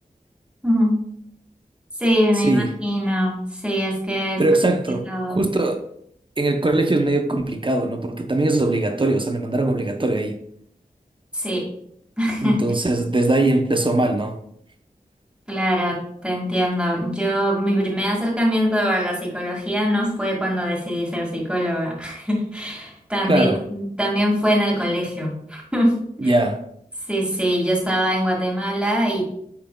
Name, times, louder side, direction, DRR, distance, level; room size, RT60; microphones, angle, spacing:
voice 1, 0.6-1.0 2.0-5.4 11.3-11.6 12.2-12.6 15.5-25.9 26.2-26.3 27.1-29.2, equal, 5° right, 2.1 m, -23 dB
voice 2, 2.4-2.7 4.4-5.0 5.3-5.8 6.4-10.4 12.4-14.4 23.2-23.6 26.2-26.6, right 2 dB, 35° right, 0.7 m, -21 dB
8.6 x 5.8 x 2.3 m
wide cardioid pair, 75°, 15 cm